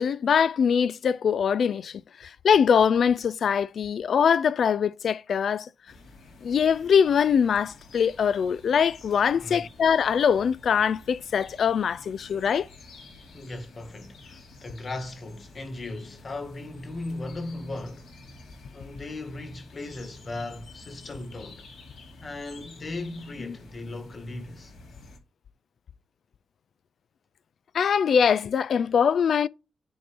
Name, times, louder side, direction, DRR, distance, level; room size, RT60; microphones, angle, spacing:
voice 1, 0.0-5.7 6.4-12.7 23.4-23.6 27.7-29.5, left 7 dB, 60° left, 0.3 m, -23 dB
sound 1, 5.9-25.2, left 2 dB, 80° left, 2.5 m, -49 dB
voice 2, 9.3-9.7 13.3-18.1 18.7-21.7 22.2-24.7, left 2 dB, 35° left, 1.7 m, -37 dB
9.5 x 4.2 x 3.5 m
cardioid pair, 110°, 0 cm